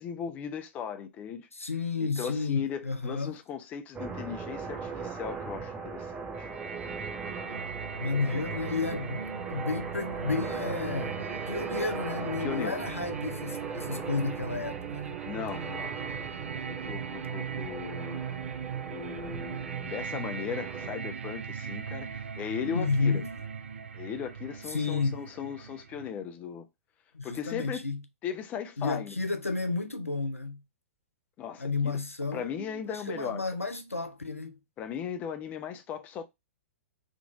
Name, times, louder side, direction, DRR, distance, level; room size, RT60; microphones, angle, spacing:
voice 1, 0.0-1.5 2.2-6.5 8.1-8.6 12.4-12.8 15.2-16.0 16.6-18.2 18.9-23.2 23.9-26.7 27.2-27.8 28.2-29.1 31.4-31.9 32.3-33.4 34.8-36.3, left 8 dB, 20° left, 0.4 m, -37 dB
voice 2, 1.5-3.4 8.0-9.2 9.5-15.2 22.7-23.4 24.7-25.3 27.1-28.0 28.8-30.6 31.6-34.6, left 4 dB, 85° left, 0.5 m, -32 dB
sound 1, 3.9-20.9, right 5 dB, 15° right, 0.8 m, -39 dB
sound 2, 6.3-26.1, right 7 dB, 65° right, 0.4 m, -39 dB
3.7 x 2.4 x 2.4 m
figure-of-eight pair, 110°, 7 cm